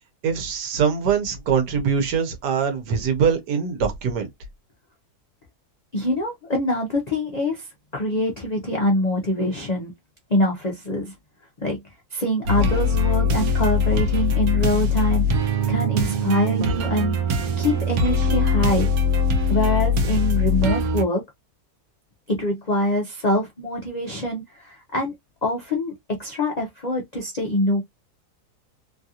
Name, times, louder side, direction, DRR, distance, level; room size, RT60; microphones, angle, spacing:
voice 1, 0.2-4.3, right 6 dB, 90° right, 1.4 m, -23 dB
voice 2, 5.9-9.9 10.3-11.1 11.6-11.8 12.1-15.3 15.7-17.1 17.6-18.9 19.5-21.2 22.3-25.1 25.4-27.8, left 1 dB, 65° left, 0.4 m, -24 dB
sound 1, 12.4-21.0, left 3 dB, 70° right, 1.1 m, -21 dB
3.1 x 2.4 x 2.7 m
omnidirectional pair, 1.7 m